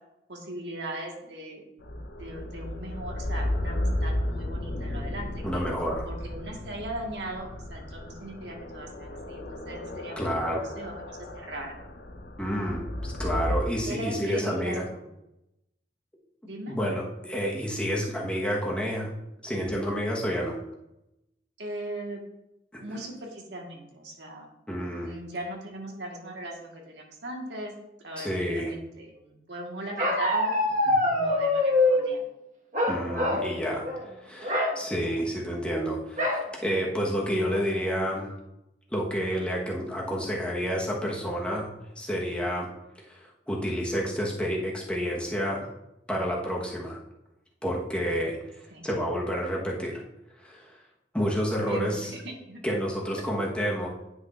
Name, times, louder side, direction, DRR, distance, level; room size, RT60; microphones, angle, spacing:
voice 1, 0.3-1.6 2.2-5.6 6.0-11.8 13.8-15.1 16.4-16.8 21.6-22.2 22.8-24.5 24.9-27.7 28.0-30.5 31.0-32.2 48.7-48.9 51.7-52.6, right 1 dB, 85° right, 0 dB, 1.6 m, -39 dB
sound 1, 1.8-13.6, left 1 dB, 90° left, 0.8 m, -34 dB
voice 2, 5.4-6.1 10.2-10.7 12.4-14.8 16.7-19.1 19.4-20.6 22.7-23.0 24.7-25.2 28.2-28.7 30.9-31.0 32.9-38.3 38.9-41.7 42.0-42.7 43.0-45.7 46.1-47.0 47.6-50.0 50.4-50.8 51.1-52.1 52.6-53.9, equal, 5° left, -3 dB, 1.2 m, -29 dB
Bark, 30.0-32.1 32.7-33.5 33.8-34.0 34.4-34.7 36.2-36.5 37.0-37.1 37.4-37.9, left 2 dB, 45° right, 1.4 m, -24 dB
9.8 x 6.3 x 2.5 m, 0.88 s
head